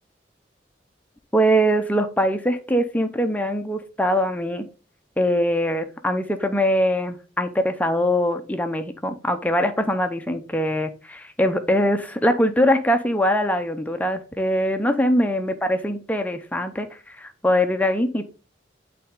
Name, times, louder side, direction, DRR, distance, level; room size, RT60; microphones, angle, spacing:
voice 1, 1.3-4.7 5.2-18.3, equal, 10° left, 6 dB, 0.7 m, -22 dB
8.3 x 4.1 x 3.7 m, 0.35 s
head